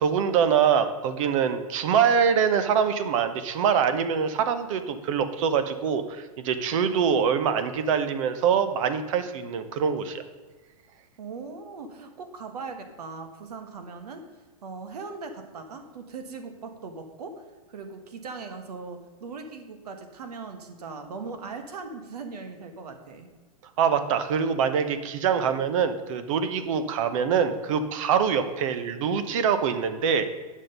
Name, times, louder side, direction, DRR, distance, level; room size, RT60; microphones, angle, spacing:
voice 1, 0.0-10.2 23.8-30.3, right 7 dB, 55° right, 11 dB, 1.0 m, -24 dB
voice 2, 11.2-14.2 14.6-23.3, right 4 dB, 80° right, 7 dB, 1.5 m, -39 dB
9.8 x 6.4 x 5.4 m, 1.3 s
hypercardioid pair, 135°, 20 cm